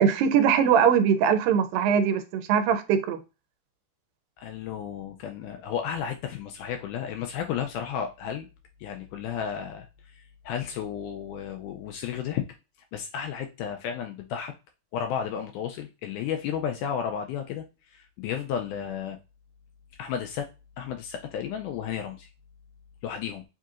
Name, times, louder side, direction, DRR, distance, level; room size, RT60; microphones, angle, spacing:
voice 1, 0.0-3.2, right 7 dB, 85° right, 2.3 m, -21 dB
voice 2, 4.4-8.5 8.8-9.9 10.1-12.4 12.9-14.5 14.9-19.2 20.0-20.5 20.8-22.3 23.0-23.4, left 8 dB, 80° left, 1.8 m, -33 dB
7.3 x 2.7 x 2.4 m
omnidirectional pair, 4.0 m